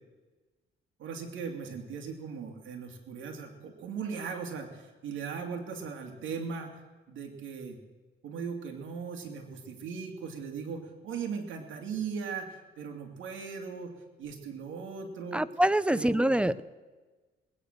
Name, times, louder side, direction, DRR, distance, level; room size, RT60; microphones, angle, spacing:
voice 1, 1.0-6.8 7.1-7.8 8.2-13.9 14.2-15.4 15.9-16.3, right 6 dB, 75° right, 3 dB, 2.7 m, -38 dB
voice 2, 15.3-16.6, right 1 dB, 5° right, 17 dB, 0.6 m, -25 dB
20.0 x 9.4 x 6.7 m, 1.3 s
cardioid pair, 90°, 20 cm